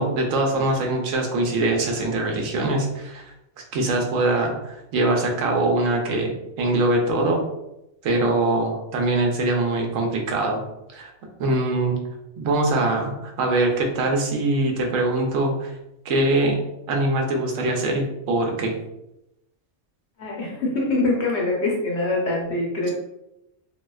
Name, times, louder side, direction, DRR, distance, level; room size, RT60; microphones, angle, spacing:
voice 1, 0.0-3.2 3.7-7.4 8.0-10.6 10.9-11.1 11.4-12.0 12.4-15.7 16.0-16.6 16.9-18.7, right 2 dB, 75° right, 1 dB, 1.0 m, -23 dB
voice 2, 20.2-22.9, left 2 dB, 60° left, -2 dB, 0.9 m, -24 dB
3.1 x 2.7 x 2.2 m, 0.88 s
omnidirectional pair, 1.4 m